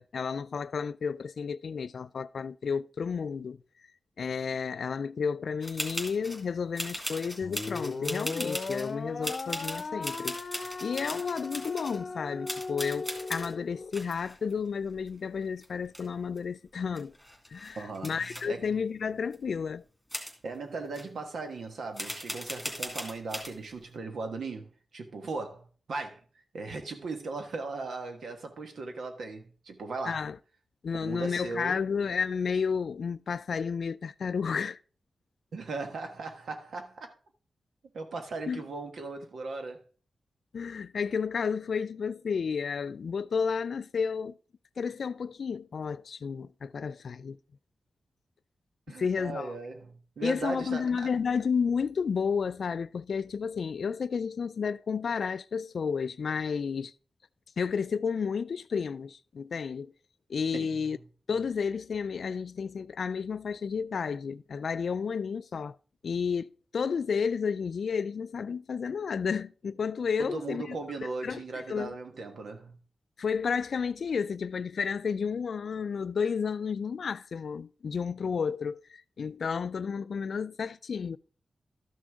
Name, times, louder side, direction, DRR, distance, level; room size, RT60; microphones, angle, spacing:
voice 1, 0.0-3.6 4.2-10.4 10.8-17.1 17.5-19.8 30.1-30.4 30.8-34.8 38.5-38.6 40.5-44.4 44.8-47.4 49.0-49.6 50.2-56.9 57.6-59.9 60.3-61.0 61.3-65.7 66.0-70.8 71.2-71.9 73.2-81.2, left 6 dB, 70° left, 0.3 m, -32 dB
sound 1, 5.6-6.4 6.8-8.9 9.2-12.0 12.5-13.5 13.9-15.4 15.6-16.4 16.7-16.8 17.0-18.4 19.3-19.4 20.1-20.3 20.9-21.0 22.0-23.5, equal, ahead, 2.5 m, -38 dB
sound 2, 7.4-13.9, left 3 dB, 50° left, 0.7 m, -38 dB
voice 2, 17.8-18.7 20.4-26.2 26.5-30.2 31.0-31.7 35.5-37.1 37.9-39.8 48.9-51.1 60.5-60.8 70.2-72.8, right 3 dB, 85° right, 1.3 m, -38 dB
12.5 x 6.2 x 3.5 m
wide cardioid pair, 85°, 0 cm